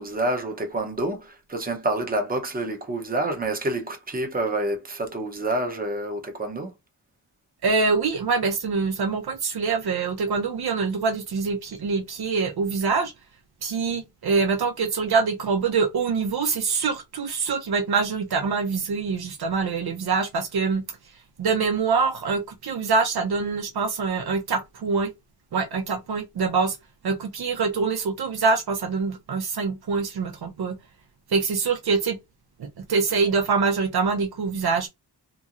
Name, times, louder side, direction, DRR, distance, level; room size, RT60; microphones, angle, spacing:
voice 1, 0.0-6.7, right 2 dB, 20° right, 0.7 m, -28 dB
voice 2, 7.6-13.1 13.6-20.8 21.4-25.1 25.5-26.8 27.0-30.8 31.3-32.2 32.6-34.9, right 4 dB, 65° right, 0.6 m, -24 dB
2.9 x 2.6 x 2.5 m
wide cardioid pair, 85°, 41 cm